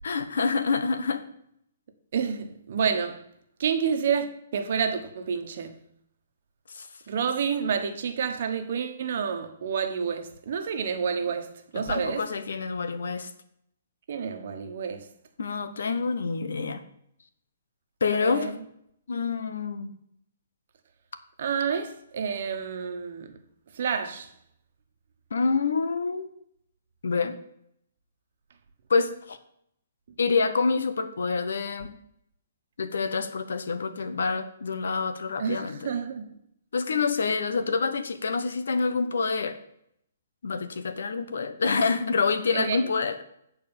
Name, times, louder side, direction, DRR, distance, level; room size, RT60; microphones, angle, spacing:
voice 1, 0.0-1.3 6.7-6.9 11.7-13.3 15.4-16.8 18.0-18.5 19.1-20.0 25.3-26.3 27.0-27.4 28.9-29.4 30.2-32.0 32.8-35.9 36.7-39.6 40.4-43.2, left 4 dB, 85° left, 1.0 m, -27 dB
voice 2, 2.1-3.2 3.6-5.8 7.1-12.3 14.1-15.1 18.2-18.6 21.4-23.4 23.7-24.3 35.4-36.3 42.5-42.8, right 6 dB, 55° right, 1.2 m, -29 dB
8.9 x 4.5 x 7.2 m
hypercardioid pair, 155°, 0 cm